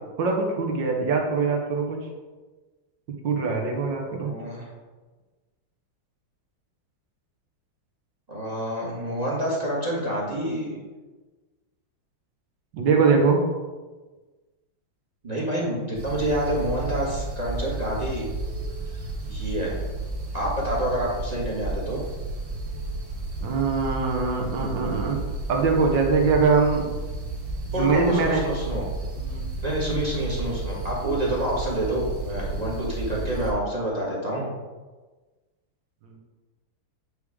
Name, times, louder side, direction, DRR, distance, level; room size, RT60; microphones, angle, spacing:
voice 1, 0.2-2.1 3.2-4.3 12.7-13.4 23.4-25.2 25.5-26.9 27.8-28.4 29.2-29.5 36.0-36.2, right 4 dB, 65° right, 1 dB, 1.6 m, -23 dB
voice 2, 4.2-4.7 8.3-10.8 15.2-18.3 19.2-19.8 20.3-22.0 27.7-28.8 29.6-34.5, right 1 dB, 25° right, -4 dB, 1.3 m, -27 dB
sound 1, 15.9-33.5, right 2 dB, 50° right, 1.7 m, -32 dB
8.6 x 3.4 x 4.8 m, 1.3 s
omnidirectional pair, 2.2 m